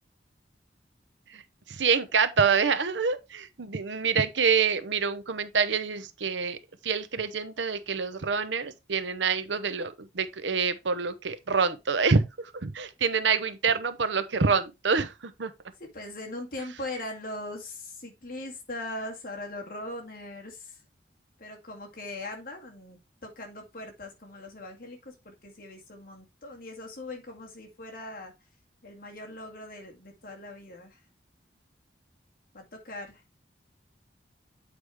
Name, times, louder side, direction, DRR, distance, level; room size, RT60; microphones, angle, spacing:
voice 1, 1.7-6.6 6.8-15.5, right 5 dB, 85° right, 0.8 m, -26 dB
voice 2, 15.8-20.8 21.4-28.3 28.8-31.0 32.5-33.2, left 1 dB, 50° left, 2.1 m, -40 dB
8.2 x 4.9 x 3.5 m
head